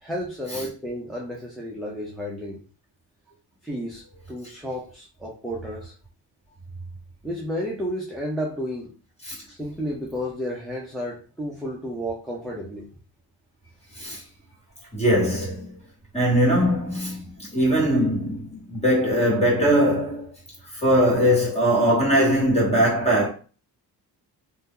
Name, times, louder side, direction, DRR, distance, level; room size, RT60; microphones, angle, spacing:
voice 1, 0.0-2.6 3.6-5.9 7.2-8.9 9.6-12.8, equal, ahead, 0.5 m, -32 dB
voice 2, 14.9-15.7 16.1-20.3 20.7-23.3, equal, 15° left, 1.4 m, -21 dB
2.6 x 2.2 x 3.6 m
cardioid pair, 135°, 42 cm